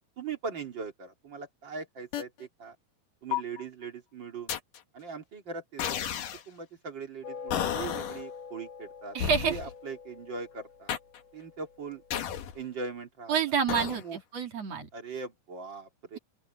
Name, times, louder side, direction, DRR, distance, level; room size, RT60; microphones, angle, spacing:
voice 1, 0.0-2.7 3.2-4.5 4.9-6.0 6.5-9.1 9.5-11.0 11.3-12.0 12.5-13.4 13.9-14.2 14.9-16.2, right 5 dB, 35° right, 3.0 m, -40 dB
sound 1, 2.1-2.2 3.3-3.6 4.5-4.8 5.8-6.4 7.5-8.2 9.2-9.7 10.9-11.2 12.1-12.6 13.7-14.0, left 10 dB, 75° left, 3.2 m, -32 dB
sound 2, 7.2-12.7, left 5 dB, 50° left, 3.7 m, -45 dB
voice 2, 9.1-9.6 13.3-14.9, right 7 dB, 55° right, 3.0 m, -28 dB
open air
omnidirectional pair, 3.8 m